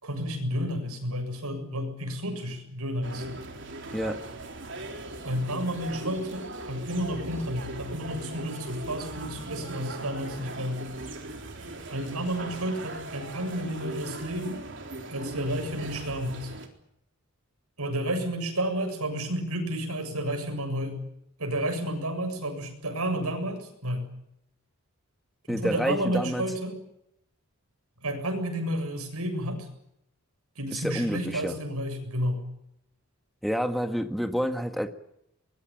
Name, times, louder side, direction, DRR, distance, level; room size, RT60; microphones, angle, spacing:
voice 1, 0.0-3.4 5.2-10.8 11.9-14.7 15.1-16.5 17.8-21.0 21.4-24.1 25.5-26.8 28.0-29.7 30.6-32.4, equal, 90° right, 6 dB, 7.4 m, -31 dB
sound 1, 3.0-16.7, right 2 dB, 55° right, 3.8 m, -39 dB
voice 2, 25.5-26.4 30.7-31.6 33.4-34.9, equal, ahead, 7 dB, 1.7 m, -28 dB
24.0 x 22.0 x 9.0 m, 0.79 s
head